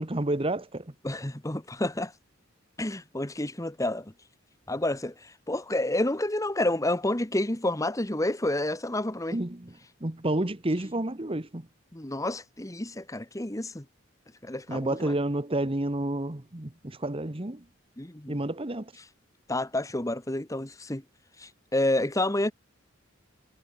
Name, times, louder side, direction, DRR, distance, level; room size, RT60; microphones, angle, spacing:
voice 1, 0.0-0.9 9.3-9.7 10.0-11.7 14.7-17.6 18.3-18.9, right 1 dB, 25° right, 1.3 m, -30 dB
voice 2, 1.0-2.1 2.8-4.1 4.7-9.4 11.9-13.8 14.4-15.1 18.0-18.4 19.5-21.0 21.4-22.5, left 1 dB, 15° left, 1.3 m, -29 dB
head